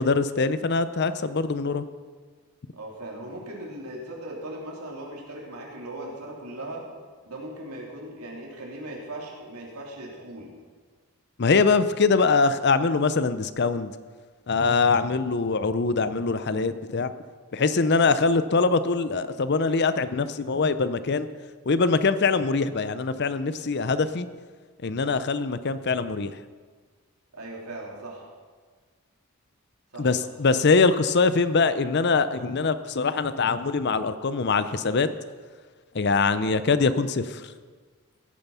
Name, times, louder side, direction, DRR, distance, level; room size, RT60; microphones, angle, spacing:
voice 1, 0.0-1.8 11.4-13.9 14.5-17.1 17.5-21.3 21.7-24.3 24.8-26.3 30.0-35.1 35.9-37.4, left 4 dB, 50° left, 13 dB, 0.6 m, -23 dB
voice 2, 2.7-6.8 7.2-10.5 19.1-19.2 27.3-28.2 29.9-30.1, right 1 dB, 85° right, -2 dB, 3.3 m, -38 dB
16.5 x 9.0 x 5.6 m, 1.5 s
head